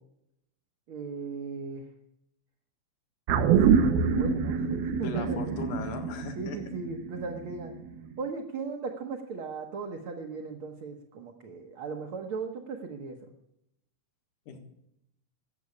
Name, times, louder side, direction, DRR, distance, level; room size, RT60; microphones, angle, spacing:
voice 1, 0.9-1.8 3.4-5.6 6.4-7.7 8.2-13.2, right 4 dB, 55° right, 1 dB, 1.5 m, -37 dB
sound 1, 3.3-7.9 8.2-8.3, right 6 dB, 70° right, 2.3 m, -26 dB
voice 2, 5.0-6.6 14.5-14.6, left 6 dB, 65° left, 6 dB, 2.9 m, -38 dB
14.0 x 7.8 x 9.6 m, 0.81 s
omnidirectional pair, 3.9 m